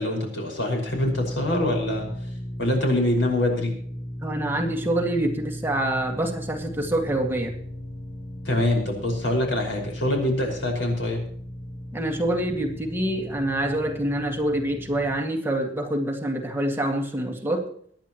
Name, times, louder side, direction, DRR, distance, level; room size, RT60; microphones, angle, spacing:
voice 1, 0.0-2.1 2.6-3.7 8.4-11.2, left 1 dB, 80° left, 2 dB, 5.4 m, -24 dB
sound 1, 0.9-15.2, equal, 25° left, 0.9 m, -36 dB
voice 2, 4.2-7.5 11.9-17.7, right 1 dB, 10° right, 2 dB, 1.9 m, -26 dB
23.5 x 10.5 x 3.0 m, 0.62 s
head